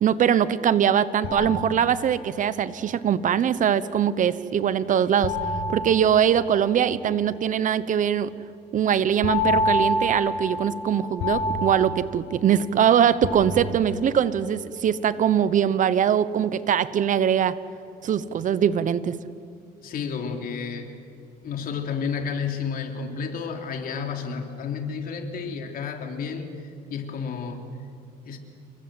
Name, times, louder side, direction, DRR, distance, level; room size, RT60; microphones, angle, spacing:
voice 1, 0.0-5.4 5.7-8.3 8.7-17.6 18.0-19.2, right 9 dB, 50° right, 15 dB, 1.0 m, -22 dB
sound 1, 1.2-2.4 5.2-6.9 9.2-12.8 13.2-14.2, left 2 dB, 75° left, 6.2 m, -28 dB
voice 2, 19.8-21.0 21.4-26.5 26.9-27.6 28.3-28.4, left 6 dB, 60° left, 3 dB, 3.5 m, -31 dB
29.0 x 22.5 x 8.0 m, 2.5 s
cardioid pair, 110°, 17 cm